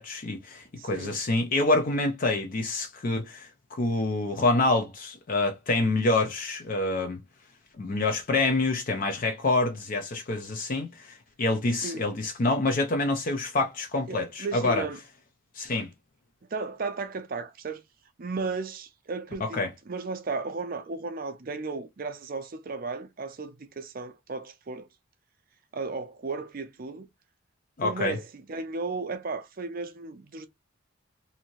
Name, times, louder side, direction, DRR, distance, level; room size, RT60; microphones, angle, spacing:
voice 1, 0.0-7.2 7.8-14.9 15.5-15.9 19.4-19.7 27.8-28.2, left 2 dB, 40° left, 0.4 m, -27 dB
voice 2, 0.8-1.1 11.8-12.1 14.1-15.0 16.5-17.8 18.2-24.9 25.7-27.1 27.8-28.2 28.5-30.5, right 4 dB, 45° right, 0.4 m, -35 dB
2.8 x 2.6 x 2.9 m
head